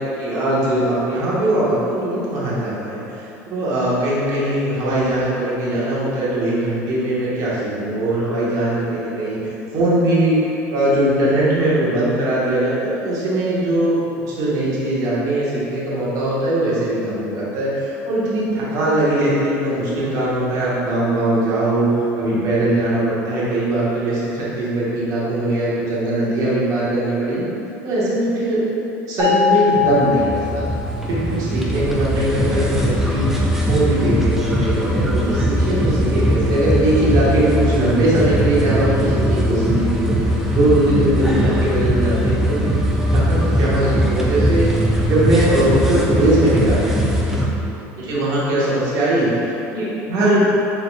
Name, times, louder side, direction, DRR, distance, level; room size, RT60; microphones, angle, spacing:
voice 1, 0.0-10.4 10.7-14.0 14.3-27.4 27.8-28.6 29.1-30.7 31.1-33.3 33.7-42.8 43.1-46.8 48.0-50.5, right 1 dB, 55° right, -8 dB, 1.4 m, -20 dB
sound 1, 29.2-31.4, left 8 dB, 25° left, 1.1 m, -21 dB
sound 2, 29.9-47.5, equal, 5° right, 0.5 m, -20 dB
4.1 x 4.0 x 2.4 m, 3.0 s
supercardioid pair, 95°, 8 cm